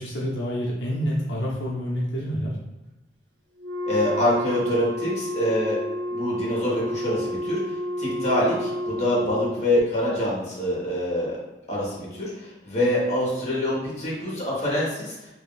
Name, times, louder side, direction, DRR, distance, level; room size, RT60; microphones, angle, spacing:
voice 1, 0.0-2.5, equal, 90° left, -4 dB, 0.8 m, -28 dB
Wind instrument woodwind instrument, 3.6-9.7, equal, 70° right, 0.8 m, -30 dB
voice 2, 3.9-5.8 6.1-7.6 8.0-11.4 11.7-12.3 12.6-15.2, left 1 dB, 40° left, -5 dB, 1.3 m, -25 dB
3.0 x 2.7 x 3.9 m, 1.0 s
head